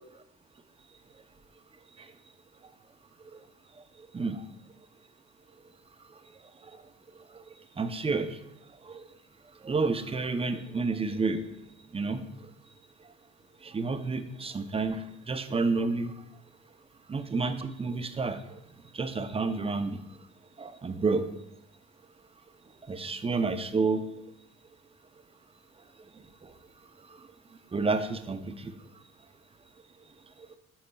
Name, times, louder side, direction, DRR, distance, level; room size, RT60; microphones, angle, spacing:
voice 1, 4.0-4.4 6.6-6.8 7.3-7.4 7.8-8.4 8.8-9.0 9.6-11.5 11.9-12.5 13.6-16.2 17.1-18.6 18.9-20.0 20.6-21.3 22.8-24.0 26.1-26.5 27.0-27.3 27.7-28.7 30.4-30.6, right 4 dB, 20° right, 9 dB, 0.6 m, -30 dB
9.7 x 6.4 x 2.3 m, 0.80 s
cardioid pair, 90°, 30 cm